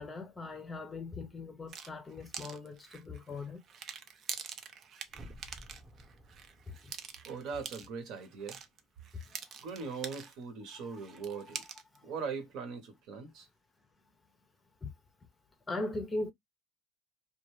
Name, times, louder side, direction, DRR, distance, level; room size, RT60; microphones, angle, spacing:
voice 1, 0.0-3.6 6.7-6.9 9.1-9.2 10.7-10.8 11.3-11.6 11.9-12.1 14.8-14.9 15.7-16.3, left 2 dB, 15° left, 0.6 m, -40 dB
sound 1, 1.7-10.4 10.7-12.0, right 7 dB, 40° right, 0.5 m, -45 dB
sound 2, 5.1-8.0 8.4-8.5, equal, 20° right, 0.9 m, -54 dB
voice 2, 7.2-8.6 9.6-11.6 12.0-13.5, right 5 dB, 60° right, 1.0 m, -40 dB
2.5 x 2.3 x 3.0 m
cardioid pair, 130°, 0 cm